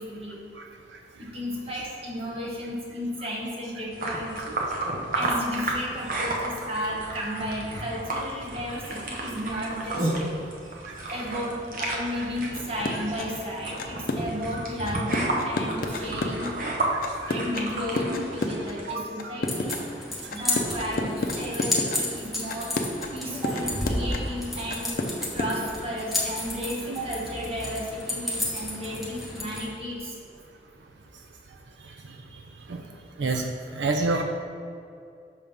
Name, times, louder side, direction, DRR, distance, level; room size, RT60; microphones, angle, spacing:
voice 1, 0.0-0.4 1.2-4.6 5.1-10.1 11.1-16.6 17.3-19.9 20.3-22.7 23.1-24.9 25.3-30.3, equal, 35° right, -3 dB, 1.2 m, -33 dB
voice 2, 0.6-1.0 9.5-9.6 10.9-11.0 16.6-16.8 17.2-17.4 18.9-19.3 20.5-20.7 32.7-32.8 33.2-33.5 33.7-34.2, right 3 dB, 90° right, 4 dB, 0.5 m, -29 dB
small dog eats pieces of cucumber and carrot, 3.9-18.9, right 2 dB, 50° right, 0.8 m, -32 dB
sound 1, 12.4-13.3 13.8-14.4 14.8-16.5 17.0-18.7 19.2-19.8 20.3-22.0 22.5-23.2 23.4-24.4 24.7-25.5, left 2 dB, 55° left, 0.5 m, -29 dB
sound 2, 19.5-29.7, left 1 dB, ahead, 0.8 m, -32 dB
5.9 x 3.5 x 5.4 m, 2.4 s
head